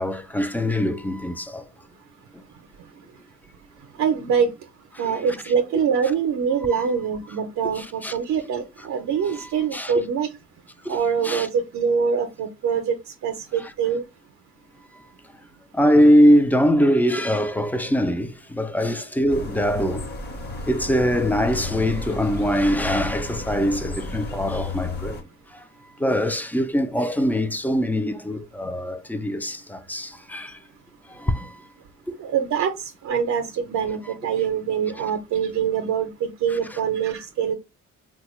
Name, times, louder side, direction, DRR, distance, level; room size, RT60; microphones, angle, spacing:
voice 1, 0.0-1.6 4.9-5.1 6.7-6.9 7.8-8.2 8.8-8.9 9.2-9.9 10.8-11.0 11.2-11.5 13.6-13.7 15.7-20.1 20.7-25.7 26.0-30.6 31.1-31.6 32.1-32.2 34.1-34.2 35.0-35.1 36.5-36.8, equal, 5° left, 0.4 m, -22 dB
voice 2, 4.0-4.5 5.0-10.3 10.9-13.0 13.2-14.0 32.2-37.5, right 7 dB, 70° right, 0.6 m, -24 dB
sound 1, 19.3-25.2, left 2 dB, 35° left, 1.0 m, -32 dB
3.5 x 2.2 x 3.0 m
cardioid pair, 90°, 30 cm